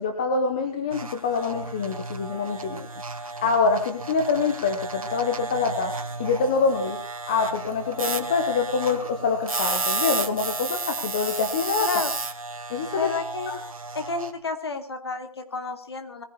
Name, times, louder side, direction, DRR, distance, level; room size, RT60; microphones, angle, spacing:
voice 1, 0.0-2.9 3.4-5.9 6.2-7.0 7.3-11.9 12.7-13.1 13.5-13.6, left 4 dB, 10° left, 5 dB, 0.9 m, -25 dB
sound 1, 0.9-14.3, right 3 dB, 65° right, 2.6 m, -32 dB
voice 2, 11.8-12.1 13.0-13.6 13.9-16.2, left 4 dB, 45° left, 7 dB, 2.9 m, -30 dB
20.5 x 16.0 x 4.3 m, 0.39 s
figure-of-eight pair, 165°, 19 cm